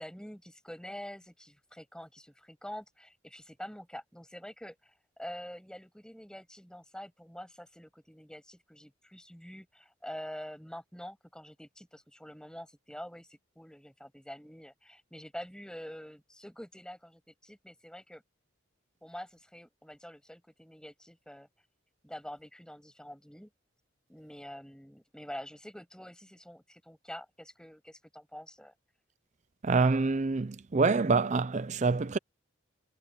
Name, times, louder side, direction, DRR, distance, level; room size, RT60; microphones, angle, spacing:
voice 1, 0.0-18.2 19.0-21.5 22.0-23.5 24.1-28.7, equal, 5° left, 7.5 m, -46 dB
voice 2, 29.6-32.2, right 4 dB, 35° right, 0.5 m, -26 dB
head